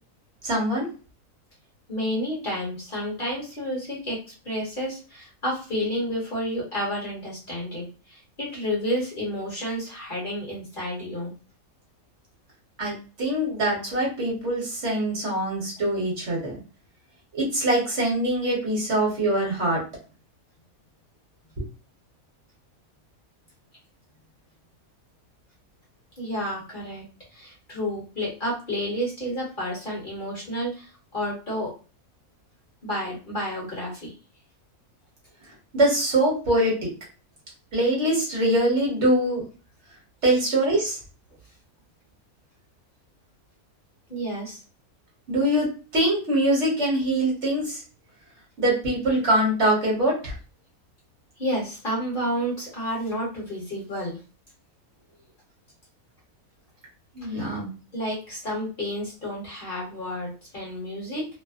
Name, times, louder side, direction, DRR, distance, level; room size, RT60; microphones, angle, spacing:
voice 1, 0.4-0.9 12.8-16.6 17.3-19.8 21.6-21.7 35.7-36.8 37.7-39.4 40.2-41.0 45.3-45.7 45.9-47.8 48.6-50.3 57.1-57.7, right 1 dB, 55° right, -3 dB, 1.2 m, -23 dB
voice 2, 1.9-4.2 4.4-11.3 26.2-27.0 27.3-31.7 32.8-34.1 44.1-44.6 51.4-54.2 57.2-57.6 57.9-61.3, equal, 40° left, -5 dB, 1.0 m, -30 dB
2.7 x 2.0 x 2.4 m, 0.35 s
omnidirectional pair, 1.6 m